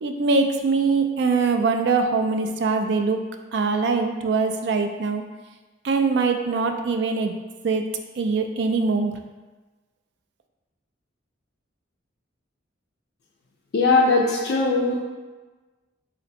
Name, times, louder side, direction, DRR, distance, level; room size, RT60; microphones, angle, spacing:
voice 1, 0.0-3.2 3.5-5.2 5.8-7.3 7.6-7.8 8.2-9.1, right 4 dB, 60° right, 5 dB, 0.3 m, -22 dB
voice 2, 13.7-15.0, left 3 dB, 55° left, -4 dB, 0.3 m, -19 dB
3.8 x 2.1 x 4.2 m, 1.2 s
head